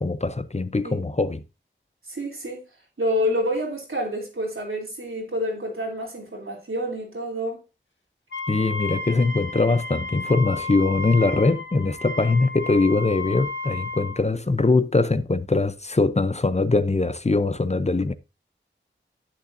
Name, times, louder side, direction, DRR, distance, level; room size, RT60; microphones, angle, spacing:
voice 1, 0.0-1.4 8.5-18.1, left 3 dB, 35° left, 0.6 m, -22 dB
voice 2, 2.1-2.6 3.0-7.6, equal, 90° right, 3.1 m, -28 dB
Wind instrument woodwind instrument, 8.3-14.2, left 2 dB, 65° left, 1.6 m, -33 dB
10.0 x 8.6 x 2.7 m
wide cardioid pair, 45°, 20 cm